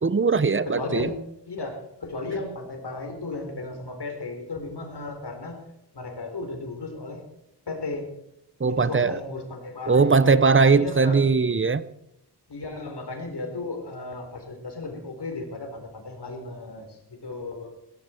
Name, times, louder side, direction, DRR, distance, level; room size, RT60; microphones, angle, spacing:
voice 1, 0.0-1.1 8.6-9.2 9.9-11.8, right 4 dB, 30° right, 16 dB, 0.8 m, -20 dB
voice 2, 0.6-1.2 1.5-5.6 5.9-7.2 7.7-8.0 8.7-11.2 12.5-17.7, left 3 dB, 70° left, 3 dB, 4.2 m, -35 dB
16.0 x 14.5 x 4.6 m, 0.82 s
wide cardioid pair, 85°, 41 cm